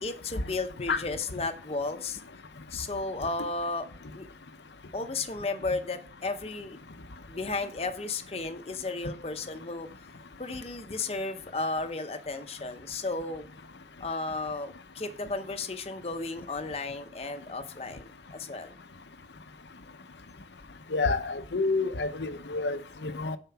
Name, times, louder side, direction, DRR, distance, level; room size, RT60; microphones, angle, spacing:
voice 1, 0.0-2.2 2.7-3.9 4.1-4.3 4.9-6.8 7.3-9.9 10.4-13.5 14.0-18.8, left 3 dB, 35° left, 0.8 m, -34 dB
voice 2, 20.9-23.4, left 3 dB, 80° left, 0.8 m, -29 dB
9.5 x 4.4 x 5.7 m
head